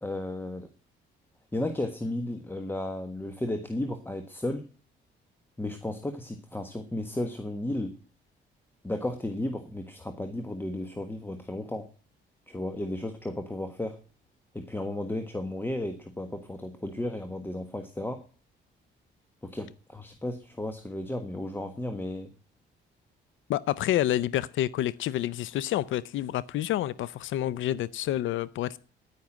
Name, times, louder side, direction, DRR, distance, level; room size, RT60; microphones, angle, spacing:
voice 1, 0.0-0.7 1.5-4.7 5.6-7.9 8.8-11.9 12.5-14.0 14.5-18.2 19.4-22.3, left 1 dB, 10° left, 1.5 m, -34 dB
voice 2, 23.5-28.8, left 13 dB, 80° left, 0.6 m, -28 dB
10.5 x 9.6 x 7.3 m
cardioid pair, 90°, 20 cm